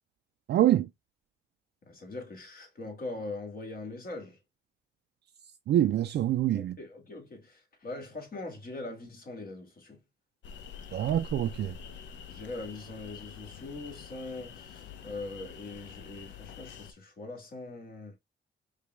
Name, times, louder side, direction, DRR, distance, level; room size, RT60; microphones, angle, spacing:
voice 1, 0.5-0.9 5.7-6.8 10.9-11.8, right 12 dB, 60° right, 0.4 m, -25 dB
voice 2, 1.9-4.4 6.5-10.0 12.3-18.2, left 2 dB, 50° left, 1.7 m, -42 dB
sound 1, 10.4-16.9, left 6 dB, 65° left, 0.6 m, -46 dB
5.0 x 2.3 x 3.2 m
cardioid pair, 90°, 20 cm